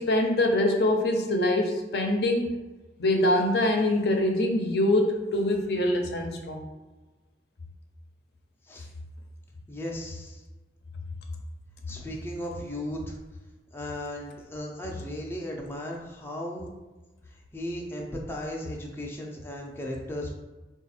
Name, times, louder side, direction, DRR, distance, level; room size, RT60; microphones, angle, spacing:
voice 1, 0.0-2.6 3.0-6.7, left 1 dB, 65° left, 2 dB, 0.6 m, -24 dB
voice 2, 9.7-10.4 11.9-13.2 13.7-16.7 17.5-20.3, left 1 dB, 15° left, -2 dB, 0.5 m, -36 dB
3.9 x 2.4 x 4.2 m, 1.2 s
head